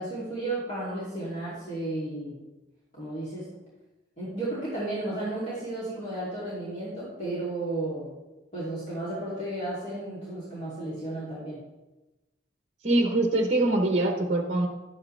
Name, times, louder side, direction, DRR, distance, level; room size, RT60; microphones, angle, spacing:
voice 1, 0.0-2.4 2.9-3.5 4.2-8.1 8.5-11.6, right 2 dB, 35° left, -9 dB, 2.8 m, -33 dB
voice 2, 12.8-14.7, right 2 dB, 35° right, 3 dB, 0.9 m, -23 dB
12.0 x 8.6 x 3.3 m, 1.1 s
head